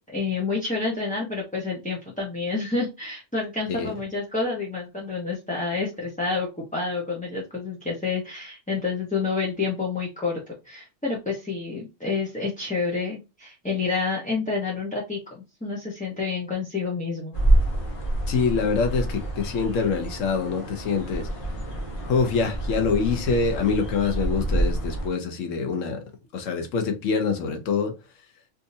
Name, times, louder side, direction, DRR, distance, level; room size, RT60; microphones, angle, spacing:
voice 1, 0.1-10.4 10.6-17.3, left 4 dB, 10° left, 0.7 m, -29 dB
sound 1, 17.3-25.1, right 1 dB, 45° left, 1.1 m, -27 dB
voice 2, 18.3-21.3 22.0-26.0 26.3-27.9, left 5 dB, 75° left, 1.2 m, -25 dB
3.5 x 2.7 x 2.6 m
omnidirectional pair, 1.3 m